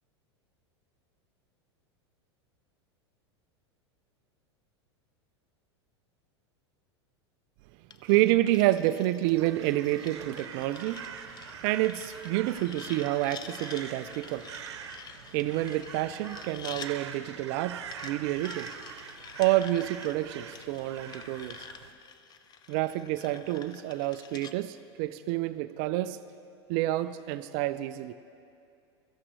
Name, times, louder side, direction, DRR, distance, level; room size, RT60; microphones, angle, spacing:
sound 1, 7.9-16.9 17.9-24.5, left 7 dB, 30° left, 0.6 m, -48 dB
voice 1, 8.0-11.0 11.6-14.4 15.3-18.7 19.4-21.7 22.7-26.2 26.7-28.1, right 15 dB, 50° right, 13 dB, 0.4 m, -28 dB
Crow, 9.2-21.9, right 8 dB, 70° right, 0.9 m, -44 dB
16.5 x 13.5 x 3.2 m, 2.5 s
hypercardioid pair, 95°, 15 cm